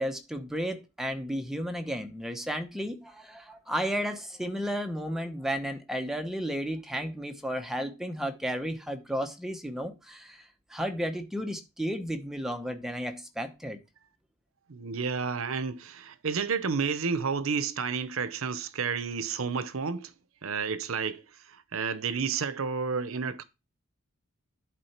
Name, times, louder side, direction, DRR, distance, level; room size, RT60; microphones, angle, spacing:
voice 1, 0.0-13.8, equal, ahead, 0.9 m, -33 dB
voice 2, 14.7-20.1 20.4-23.4, right 5 dB, 75° right, 0.7 m, -31 dB
11.0 x 4.6 x 4.4 m
head